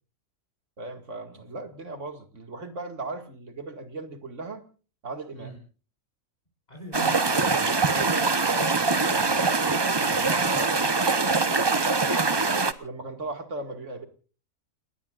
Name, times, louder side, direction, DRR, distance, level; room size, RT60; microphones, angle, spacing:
voice 1, 0.8-4.6 5.0-5.5 7.9-12.2 12.8-14.1, right 2 dB, 60° right, 7 dB, 2.4 m, -38 dB
voice 2, 6.7-8.5, equal, 30° left, -2 dB, 5.2 m, -42 dB
sound 1, 6.9-12.7, right 4 dB, 25° right, 0.7 m, -23 dB
30.0 x 19.5 x 2.5 m, 0.38 s
omnidirectional pair, 1.5 m